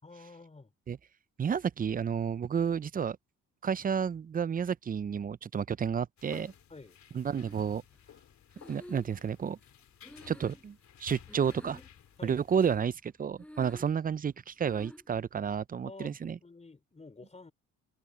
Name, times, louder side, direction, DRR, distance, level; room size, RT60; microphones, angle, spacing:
voice 1, 0.0-0.7 6.7-7.0 12.2-12.4 15.8-17.5, left 3 dB, 20° left, 3.8 m, -50 dB
voice 2, 1.4-3.2 3.6-6.5 7.1-7.8 8.7-9.6 10.3-11.8 12.2-16.4, right 7 dB, 30° right, 0.5 m, -31 dB
sound 1, 6.2-12.8, left 10 dB, 65° left, 3.5 m, -55 dB
Breathing, 7.2-8.0 8.5-11.0 11.3-12.1 12.5-13.1 13.3-14.0 14.6-15.1, left 1 dB, 5° left, 5.6 m, -50 dB
cardioid pair, 90°, 30 cm